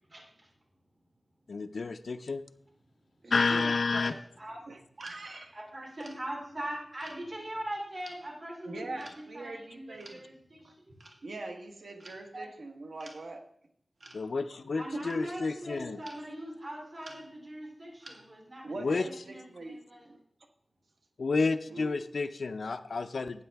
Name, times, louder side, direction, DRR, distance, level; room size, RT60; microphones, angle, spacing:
voice 1, 0.1-0.5 3.9-4.6 5.5-10.7 12.3-12.5 14.7-20.1, right 1 dB, 40° right, -1 dB, 2.7 m, -41 dB
voice 2, 1.5-2.4 3.3-4.1 14.1-16.0 18.8-19.1 21.2-23.4, left 4 dB, 85° left, 9 dB, 0.5 m, -30 dB
voice 3, 3.2-3.7 4.7-5.6 8.6-10.2 10.6-10.7 11.2-13.4 14.9-15.0 18.6-19.8 20.0-20.2 21.7-22.0, right 2 dB, 90° right, 4 dB, 1.2 m, -42 dB
sound 1, 4.0-4.2 5.0-5.2 6.0-6.2 7.0-7.2 8.0-8.2 9.0-9.2 10.0-10.2 11.0-11.2 12.0-12.2 13.0-13.2 14.0-14.3 14.9-15.3 16.0-16.3 17.0-17.5 18.0-18.4, right 2 dB, 65° right, 1.6 m, -52 dB
12.5 x 8.8 x 3.4 m, 0.68 s
wide cardioid pair, 80°, 0 cm